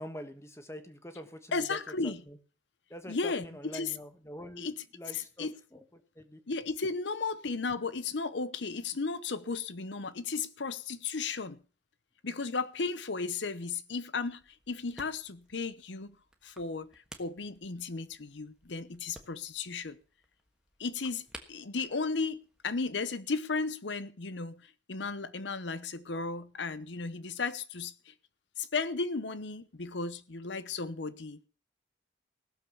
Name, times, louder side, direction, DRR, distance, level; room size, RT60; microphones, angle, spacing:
voice 1, 0.0-1.8 2.0-2.4 2.9-4.7 4.9-6.4, equal, 15° left, 1.4 m, -45 dB
voice 2, 1.5-2.2 3.1-3.9 4.6-4.7 5.1-5.5 6.5-11.6 12.2-16.2 16.4-20.0 20.8-28.1 28.6-31.5, left 4 dB, 80° left, 0.9 m, -35 dB
sound 1, 14.3-23.0, right 1 dB, 5° right, 1.4 m, -56 dB
16.5 x 7.1 x 7.1 m
head